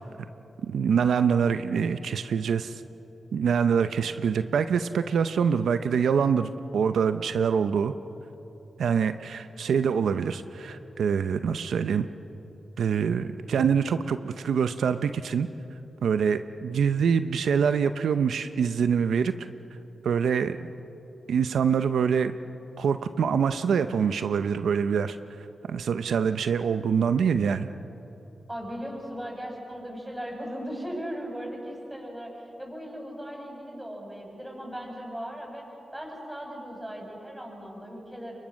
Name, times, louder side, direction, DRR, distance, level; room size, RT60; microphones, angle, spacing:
voice 1, 0.6-2.8 3.3-7.9 8.8-12.1 12.8-15.5 16.0-19.3 20.0-20.7 21.3-22.3 22.8-25.2 25.7-27.7, right 6 dB, 90° right, 10 dB, 0.7 m, -25 dB
voice 2, 28.5-35.7 35.9-38.4, equal, 10° right, 0 dB, 7.5 m, -38 dB
28.5 x 23.5 x 6.4 m, 3.0 s
cardioid pair, 70°, 0 cm